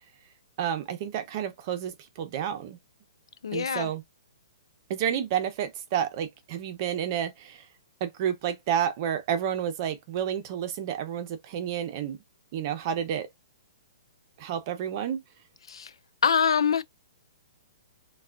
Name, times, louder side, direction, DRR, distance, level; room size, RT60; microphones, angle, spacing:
voice 1, 0.6-2.8 3.5-4.0 4.9-7.6 8.0-12.2 12.5-13.3 14.4-15.2, right 9 dB, 40° right, 0.7 m, -30 dB
voice 2, 3.4-3.9 15.7-15.9 16.2-16.8, left 7 dB, 85° left, 0.3 m, -24 dB
3.3 x 2.3 x 2.4 m
hypercardioid pair, 150°, 3 cm